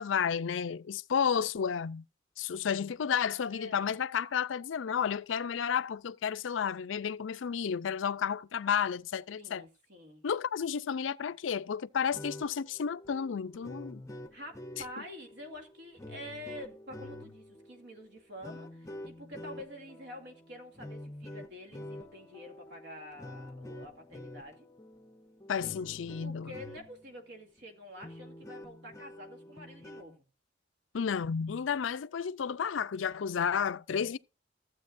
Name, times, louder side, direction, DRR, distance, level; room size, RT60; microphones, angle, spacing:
voice 1, 0.0-2.0 2.4-9.7 10.2-14.0 25.5-26.5 30.9-34.2, left 7 dB, 85° left, 0.4 m, -32 dB
voice 2, 3.5-4.0 9.4-10.2 14.3-24.7 26.2-30.2, left 1 dB, 60° right, 2.3 m, -47 dB
sound 1, 12.0-27.2 27.6-27.7 28.0-30.2, left 1 dB, 15° left, 0.7 m, -47 dB
15.0 x 8.0 x 2.5 m
head